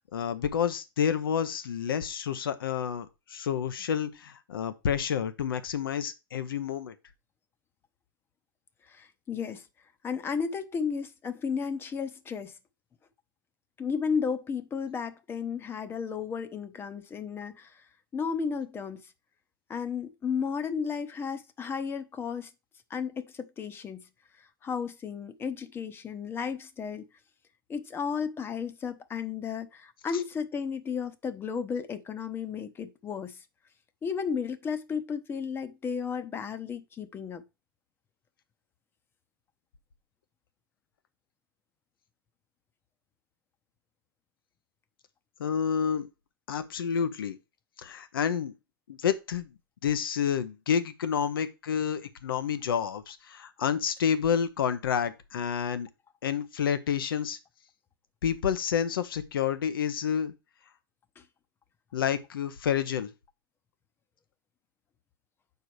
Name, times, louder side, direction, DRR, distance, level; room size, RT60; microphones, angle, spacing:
voice 1, 0.1-6.9 45.4-46.1 46.5-47.4 47.8-48.5 48.9-49.5 49.8-55.9 56.2-57.4 58.2-60.3 61.9-63.1, left 8 dB, 80° left, 1.0 m, -29 dB
voice 2, 8.9-9.7 10.0-12.6 13.8-17.8 18.1-19.1 19.7-22.5 22.9-24.1 24.4-27.1 27.7-33.4 34.0-37.4 61.2-61.3, left 6 dB, 20° left, 0.8 m, -33 dB
6.6 x 4.7 x 4.7 m
hypercardioid pair, 125°, 12 cm